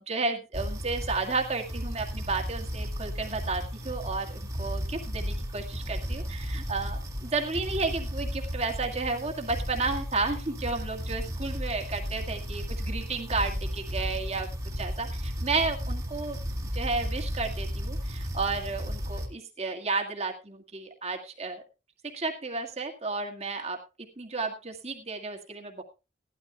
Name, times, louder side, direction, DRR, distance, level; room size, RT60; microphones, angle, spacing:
voice 1, 0.0-14.5 14.8-16.4 16.7-21.6 22.0-23.8 24.2-25.8, right 3 dB, 35° right, 3 dB, 1.8 m, -32 dB
sound 1, 0.5-19.3, equal, 15° right, 1.9 m, -34 dB
18.0 x 12.5 x 2.3 m, 0.29 s
head